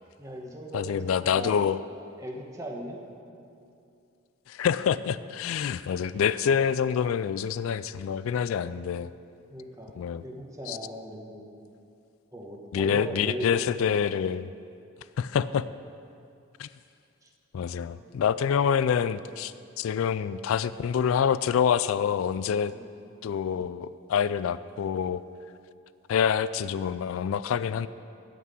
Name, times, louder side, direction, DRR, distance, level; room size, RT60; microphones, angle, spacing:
voice 1, 0.2-1.6 2.2-3.0 9.5-11.5 12.3-14.0 17.2-17.3 17.9-18.1 22.7-22.9, right 1 dB, 15° right, 0 dB, 1.3 m, -39 dB
voice 2, 0.7-1.8 4.5-9.1 10.0-10.2 10.7-10.8 12.7-14.5 15.2-15.7 16.6-16.7 17.5-22.7 23.2-25.2 26.1-27.9, left 7 dB, 80° left, 16 dB, 0.3 m, -26 dB
14.0 x 5.9 x 8.3 m, 2.5 s
head